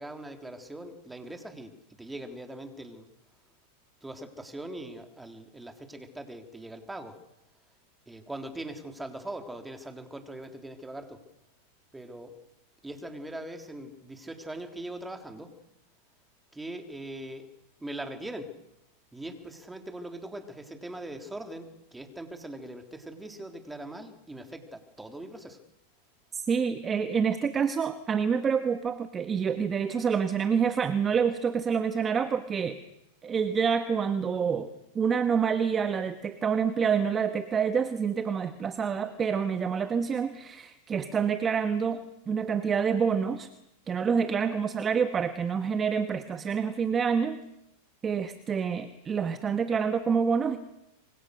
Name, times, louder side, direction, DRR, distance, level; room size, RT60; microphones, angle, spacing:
voice 1, 0.0-3.1 4.0-7.2 8.1-11.3 11.9-12.4 12.8-15.6 16.5-17.5 17.8-18.6 19.1-25.6, right 1 dB, 10° right, 6 dB, 3.7 m, -41 dB
voice 2, 26.3-32.8 33.2-43.5 43.9-47.4 48.0-50.6, right 6 dB, 25° right, 10 dB, 1.5 m, -27 dB
26.0 x 24.5 x 6.6 m, 0.86 s
hypercardioid pair, 110°, 0 cm